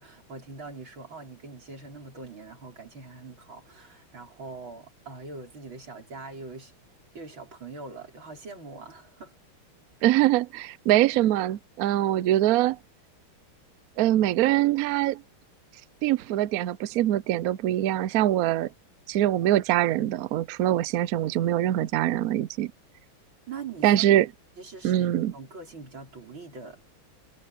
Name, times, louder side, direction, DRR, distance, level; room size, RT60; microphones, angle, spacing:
voice 1, 0.0-6.7 7.1-9.3 23.5-24.0 24.6-26.8, right 4 dB, 70° right, 5.9 m, -42 dB
voice 2, 10.0-12.8 14.0-15.2 16.0-18.7 19.1-22.7 23.8-24.3 24.8-25.3, right 13 dB, 85° right, 0.8 m, -23 dB
omnidirectional pair, 2.2 m